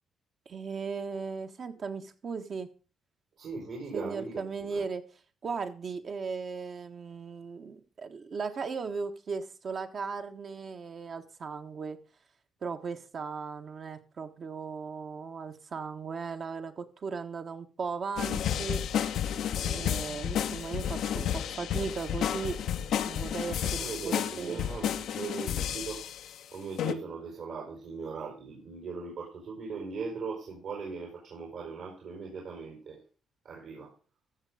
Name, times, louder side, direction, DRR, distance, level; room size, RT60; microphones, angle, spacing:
voice 1, 0.4-2.7 3.9-5.0 5.4-12.0 12.6-18.9 19.6-22.7 23.1-24.6, right 5 dB, 50° right, 6 dB, 1.5 m, -37 dB
voice 2, 3.4-4.8 23.6-26.0 26.5-33.0 33.4-33.9, right 4 dB, 70° right, -2 dB, 4.6 m, -39 dB
sound 1, 18.2-26.4 26.8-26.9, left 9 dB, 75° left, 0.8 m, -31 dB
15.0 x 6.4 x 5.0 m, 0.38 s
cardioid pair, 90°, 0 cm